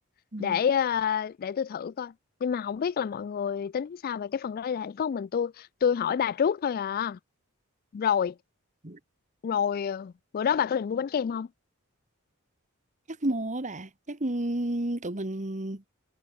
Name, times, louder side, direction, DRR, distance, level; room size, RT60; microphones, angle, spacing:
voice 1, 0.4-2.1 2.4-7.2 7.9-8.3 9.4-11.5, left 7 dB, 40° left, 0.3 m, -28 dB
voice 2, 13.1-15.8, right 1 dB, 35° right, 1.7 m, -31 dB
head